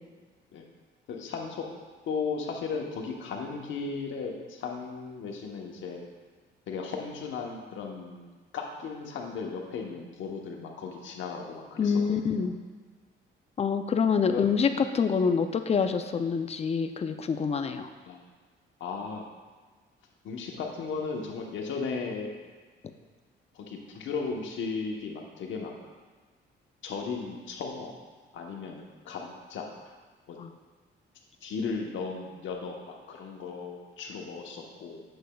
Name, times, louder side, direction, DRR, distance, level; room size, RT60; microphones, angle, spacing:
voice 1, 1.1-1.7 2.1-6.0 6.7-12.0 12.4-12.5 14.3-14.5 18.1-18.2 18.8-19.2 20.2-22.3 23.5-25.7 26.8-28.0 28.3-29.9 30.3-30.4 31.4-35.0, left 5 dB, 75° left, 1 dB, 1.0 m, -36 dB
voice 2, 11.8-12.5 13.6-14.7 14.9-17.9 30.4-30.5, left 6 dB, 30° left, 8 dB, 0.5 m, -26 dB
7.9 x 6.4 x 2.3 m, 1.4 s
cardioid pair, 90°, 20 cm